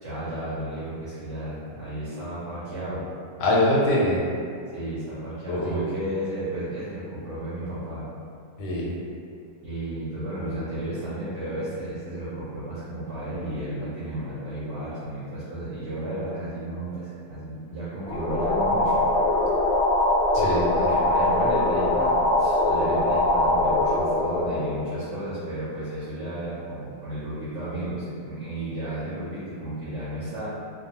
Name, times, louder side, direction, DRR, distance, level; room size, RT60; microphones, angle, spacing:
voice 1, 0.0-3.1 4.7-8.1 9.6-19.1 20.8-30.5, right 1 dB, 60° right, -11 dB, 0.8 m, -33 dB
voice 2, 3.4-4.2 5.5-5.8 8.6-8.9 20.3-20.8, left 1 dB, 90° left, -4 dB, 1.2 m, -23 dB
sound 1, 18.1-25.4, left 2 dB, 35° left, 0.6 m, -22 dB
2.6 x 2.2 x 2.7 m, 2.4 s
omnidirectional pair, 1.8 m